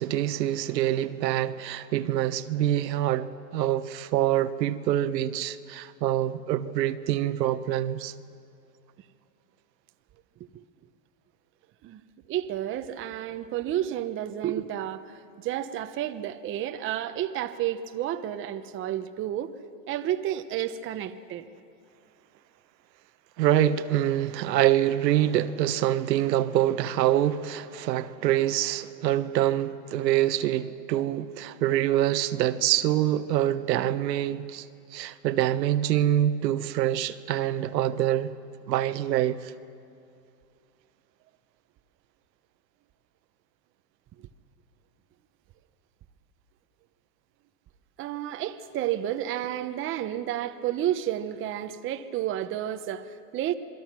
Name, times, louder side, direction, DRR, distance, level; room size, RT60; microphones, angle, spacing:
voice 1, 0.0-8.1 23.4-34.7 34.9-38.3 38.7-39.5, right 12 dB, 80° right, 1.1 m, -25 dB
voice 2, 12.3-19.5 19.9-21.5 48.0-53.5, right 12 dB, 25° right, 0.8 m, -31 dB
26.5 x 22.5 x 6.1 m
supercardioid pair, 135°, 49 cm